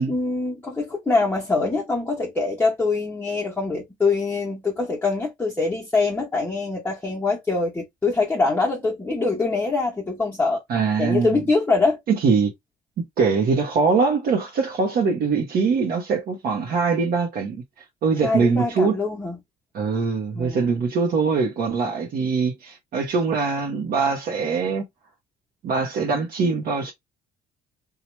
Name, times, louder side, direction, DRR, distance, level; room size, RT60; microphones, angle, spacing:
voice 1, 0.0-10.6 11.0-12.0 18.2-19.4 20.3-20.6, left 3 dB, 10° left, 0.9 m, -24 dB
voice 2, 10.7-11.4 12.1-12.5 13.2-17.6 18.0-19.0 19.7-24.9 25.6-26.9, right 5 dB, 60° right, 0.9 m, -22 dB
3.0 x 2.4 x 3.1 m
cardioid pair, 110°, 17 cm